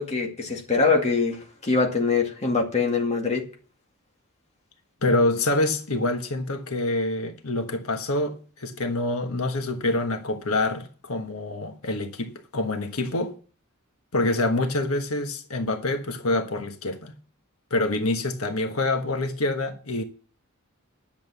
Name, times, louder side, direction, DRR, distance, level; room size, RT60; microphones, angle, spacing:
voice 1, 0.0-1.4 1.6-3.4, left 4 dB, 30° left, 2.1 m, -23 dB
voice 2, 5.0-13.3 14.1-17.1 17.7-20.0, left 2 dB, 80° left, 1.3 m, -26 dB
10.5 x 7.3 x 7.0 m
head